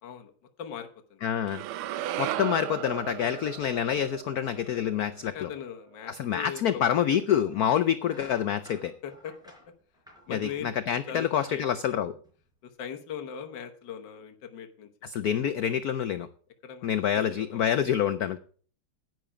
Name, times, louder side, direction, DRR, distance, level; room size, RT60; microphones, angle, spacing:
voice 1, 0.0-0.3 0.6-1.2 5.2-7.2 9.0-9.3 10.3-10.7 11.1-11.6 12.6-14.9 16.6-16.9 17.3-17.7, left 8 dB, 60° left, 6 dB, 1.7 m, -40 dB
voice 2, 1.2-1.6 2.2-5.5 6.1-8.9 10.3-12.1 15.0-16.3 16.8-18.4, left 9 dB, 85° left, 13 dB, 0.8 m, -27 dB
sound 1, 1.5-5.7, right 13 dB, 80° right, 1.5 m, -36 dB
sound 2, 7.4-7.6 8.0-10.7 11.1-12.7, equal, ahead, 4.5 m, -52 dB
11.0 x 9.2 x 4.9 m, 0.43 s
omnidirectional pair, 2.4 m